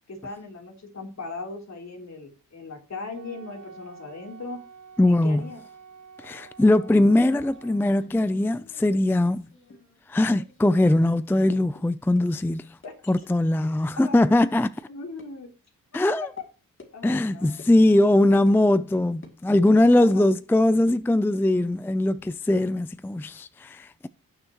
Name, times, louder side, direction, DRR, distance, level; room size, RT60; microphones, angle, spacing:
voice 1, 0.1-4.6 5.0-5.6 12.8-13.1 14.0-14.2 14.9-15.5 16.9-17.6 20.0-20.3, left 3 dB, 55° left, 3.4 m, -38 dB
Wind instrument woodwind instrument, 3.1-8.0, right 5 dB, 70° right, 3.6 m, -48 dB
voice 2, 5.0-5.5 6.2-9.5 10.1-12.8 13.1-14.8 15.9-16.3 17.0-24.1, left 1 dB, 5° left, 0.4 m, -21 dB
sound 1, 7.2-10.0 10.3-11.0 11.4-11.5 11.8-11.9 12.2-12.3 12.8-12.9 13.2-13.3 13.6-13.7 14.1-14.5 14.8-14.9 15.2-15.3 15.9-16.0 16.4-16.5 16.8-16.9 17.6-17.7 18.0-18.2 18.5-18.6 19.2-19.4 19.7-20.3 20.8-22.3, left 2 dB, 35° left, 2.5 m, -51 dB
18.5 x 6.3 x 3.0 m
cardioid pair, 90°, 34 cm